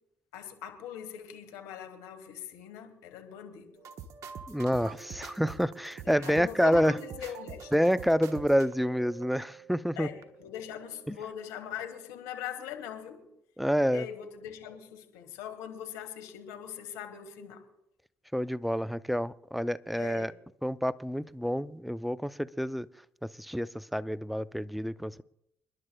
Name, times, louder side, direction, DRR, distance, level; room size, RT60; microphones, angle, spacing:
voice 1, 0.3-3.8 6.0-7.7 9.9-13.3 13.9-17.6 20.0-20.3, left 9 dB, 75° left, 1.7 m, -41 dB
sound 1, 3.8-11.5 11.7-12.1, right 7 dB, 65° right, 1.2 m, -46 dB
voice 2, 4.5-6.9 7.7-10.1 11.1-11.2 13.6-14.1 18.3-20.3 20.6-22.9 23.2-25.2, equal, ahead, 0.5 m, -28 dB
29.0 x 11.0 x 2.3 m
hypercardioid pair, 50°, 6 cm